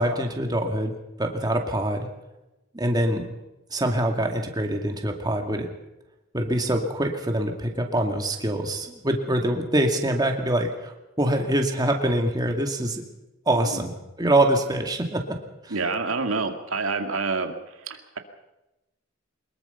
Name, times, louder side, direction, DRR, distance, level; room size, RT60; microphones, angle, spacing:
voice 1, 0.0-2.1 2.7-3.3 3.7-5.7 6.3-13.0 13.5-15.4 15.6-15.8, right 1 dB, 20° right, 3 dB, 2.3 m, -24 dB
voice 2, 15.7-17.6 17.8-18.2, right 4 dB, 85° right, 5 dB, 2.2 m, -27 dB
23.5 x 21.5 x 5.7 m, 0.99 s
head